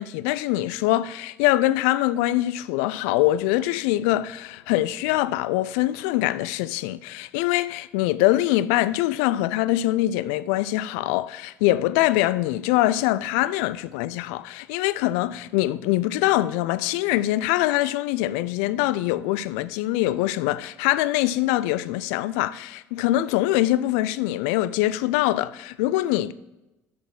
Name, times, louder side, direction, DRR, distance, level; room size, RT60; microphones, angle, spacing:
voice 1, 0.0-26.3, left 15 dB, 75° left, 0.3 m, -23 dB
6.5 x 5.5 x 6.0 m
hypercardioid pair, 60°, 7 cm